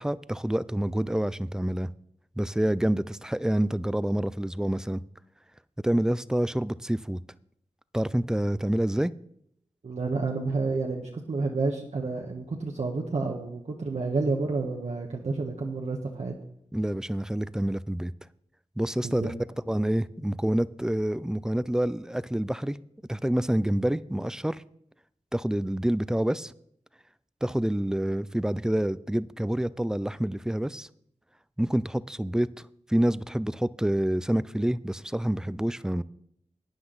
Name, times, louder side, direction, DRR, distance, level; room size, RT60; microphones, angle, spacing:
voice 1, 0.0-1.9 2.4-5.0 5.8-7.2 7.9-9.1 16.7-18.1 18.8-19.3 19.7-22.8 23.1-24.6 25.3-26.5 27.4-30.9 31.6-32.5 32.9-36.0, right 1 dB, 5° right, 18 dB, 0.3 m, -27 dB
voice 2, 9.8-16.3 19.0-19.3, right 3 dB, 60° right, 0 dB, 1.2 m, -30 dB
12.0 x 9.7 x 3.9 m, 0.72 s
wide cardioid pair, 95°, 13 cm